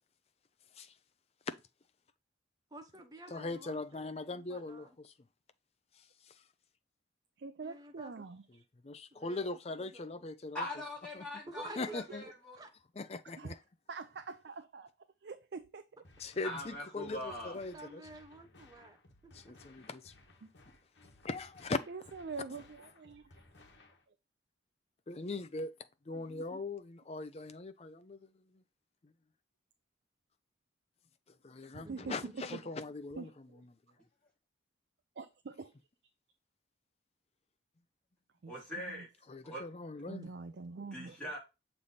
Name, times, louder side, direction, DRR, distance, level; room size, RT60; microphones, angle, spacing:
voice 1, 2.7-4.9 7.6-8.1 9.1-10.3 11.5-12.7 17.5-19.0 19.2-19.3 26.1-26.6 31.8-32.3, right 1 dB, 20° right, 0.8 m, -51 dB
voice 2, 3.3-5.1 6.0-6.4 8.8-10.6 11.1-11.3 11.8-12.2 13.0-13.6 16.2-18.0 19.3-20.1 21.2-21.8 25.1-25.7 26.1-28.6 29.0-29.1 31.4-33.3 39.3-40.3, left 3 dB, 35° left, 0.4 m, -40 dB
voice 3, 7.4-8.6 13.4-13.5 13.9-14.9 15.2-15.9 20.4-20.5 21.9-23.3 31.7-32.6 33.2-33.6 35.2-35.7 38.4-39.0 40.1-41.2, right 4 dB, 65° right, 0.4 m, -45 dB
voice 4, 10.5-12.6 16.4-17.6 38.5-39.1 39.4-39.6 40.9-41.4, left 1 dB, 5° left, 3.3 m, -42 dB
sound 1, 16.0-24.0, left 2 dB, 70° left, 1.3 m, -61 dB
7.1 x 3.4 x 4.0 m
head